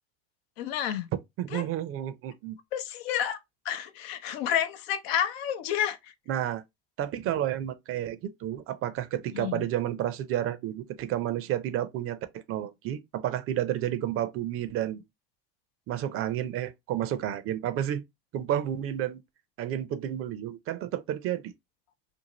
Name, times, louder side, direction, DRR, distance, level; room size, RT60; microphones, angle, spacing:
voice 1, 0.6-1.1 1.5-1.7 2.7-3.4 3.7-6.0 9.3-9.6, left 10 dB, 75° left, 0.6 m, -30 dB
voice 2, 1.4-2.6 6.3-6.6 7.0-15.0 15.9-18.0 18.3-19.2 19.6-21.5, right 11 dB, 45° right, 0.5 m, -31 dB
2.6 x 2.5 x 2.9 m
hypercardioid pair, 85°, 31 cm